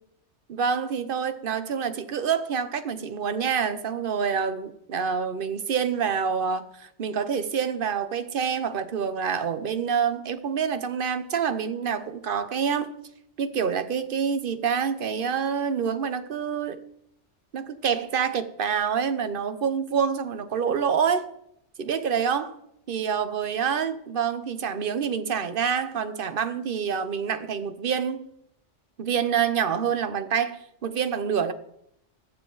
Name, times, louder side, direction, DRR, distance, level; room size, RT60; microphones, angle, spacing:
voice 1, 0.5-12.9 13.4-16.8 17.5-21.2 21.8-22.5 22.9-28.3 29.0-31.5, right 7 dB, 50° right, 1.0 m, -27 dB
20.0 x 7.2 x 4.0 m
omnidirectional pair, 1.2 m